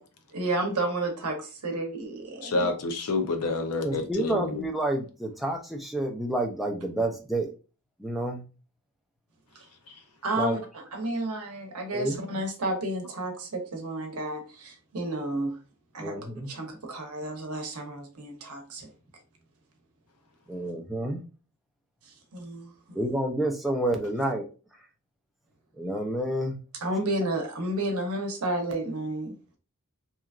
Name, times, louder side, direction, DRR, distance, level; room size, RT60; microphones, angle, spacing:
voice 1, 0.3-2.7 9.5-9.6 10.2-15.6 15.9-16.2 16.4-18.9 22.1-23.0 26.8-29.6, right 2 dB, 80° right, 0.8 m, -31 dB
voice 2, 2.4-4.7 9.9-10.0, left 3 dB, 85° left, 0.6 m, -28 dB
voice 3, 3.8-7.5 8.0-8.4 10.4-10.6 11.9-12.2 16.0-16.5 20.5-21.2 22.9-24.5 25.8-26.6, right 1 dB, ahead, 0.4 m, -29 dB
2.9 x 2.3 x 2.4 m
head